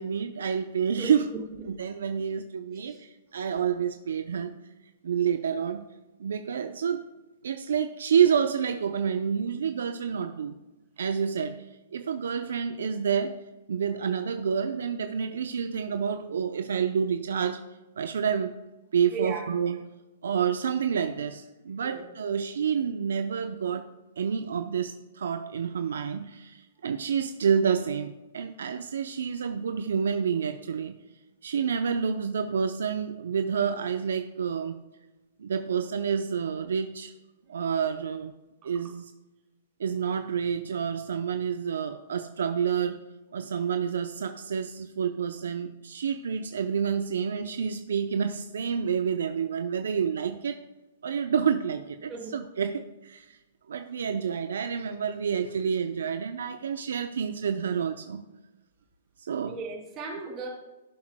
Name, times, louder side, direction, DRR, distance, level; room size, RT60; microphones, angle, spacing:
voice 1, 0.0-1.3 1.7-4.5 5.0-5.9 6.2-7.1 7.4-10.6 11.0-11.6 11.9-13.4 13.7-17.7 18.0-18.5 18.9-19.8 20.2-23.9 24.2-31.0 31.4-34.8 35.4-37.1 37.5-38.3 38.6-39.1 39.8-43.0 43.3-50.6 51.0-53.4 53.7-58.3 59.2-59.6, right 7 dB, 75° right, 9 dB, 0.5 m, -28 dB
voice 2, 1.0-1.4 2.9-3.0 19.1-19.4 21.8-22.1 38.6-38.9 52.1-52.3 59.5-60.5, right 4 dB, 30° right, -1 dB, 3.2 m, -37 dB
15.5 x 7.3 x 2.2 m, 1.1 s
hypercardioid pair, 130°, 0 cm